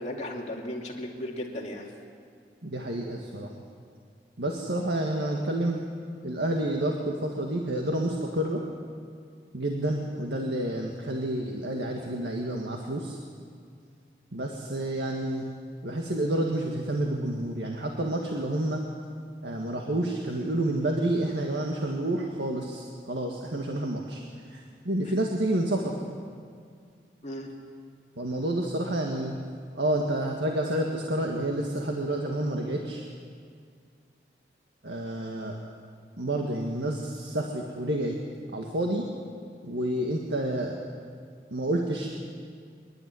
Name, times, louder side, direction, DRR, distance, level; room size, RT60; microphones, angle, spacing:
voice 1, 0.0-1.9 27.2-27.5, left 1 dB, 40° left, -1 dB, 2.7 m, -35 dB
voice 2, 2.6-3.5 4.4-5.8 6.2-8.6 9.5-13.2 14.3-15.5 15.8-18.8 19.4-24.2 24.5-26.0 28.2-29.3 29.7-33.0 34.8-35.5 36.2-38.2 38.5-39.1 39.6-40.8 41.5-42.1, right 1 dB, 85° right, 1 dB, 1.8 m, -29 dB
25.5 x 11.5 x 9.6 m, 2.2 s
head